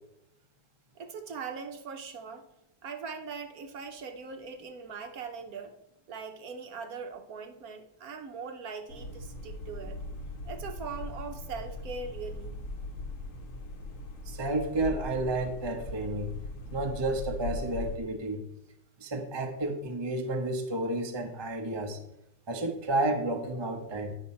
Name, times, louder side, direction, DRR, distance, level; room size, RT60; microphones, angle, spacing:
voice 1, 1.0-2.4 2.8-5.8 6.1-10.0 10.4-12.6, right 5 dB, 65° right, 6 dB, 1.0 m, -41 dB
sound 1, 8.9-18.0, left 1 dB, 55° left, 1.1 m, -40 dB
voice 2, 14.3-16.3 16.7-18.4 19.0-22.0 22.5-24.2, right 2 dB, 30° right, 4 dB, 0.4 m, -31 dB
9.8 x 5.4 x 4.2 m, 0.84 s
omnidirectional pair, 2.0 m